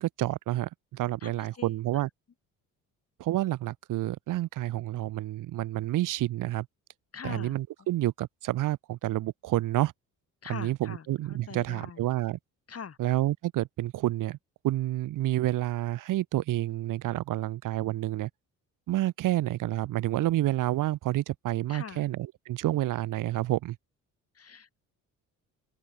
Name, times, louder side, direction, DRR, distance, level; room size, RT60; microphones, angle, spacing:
voice 1, 0.0-2.1 3.2-6.7 7.2-9.9 10.5-12.4 13.0-14.4 14.6-18.3 18.9-23.8, right 15 dB, 65° right, 0.7 m, -29 dB
voice 2, 1.2-2.0 7.1-7.6 10.4-12.1 12.7-13.0 21.7-22.1 24.3-24.8, left 6 dB, 45° left, 5.3 m, -43 dB
open air
cardioid pair, 80°, 35 cm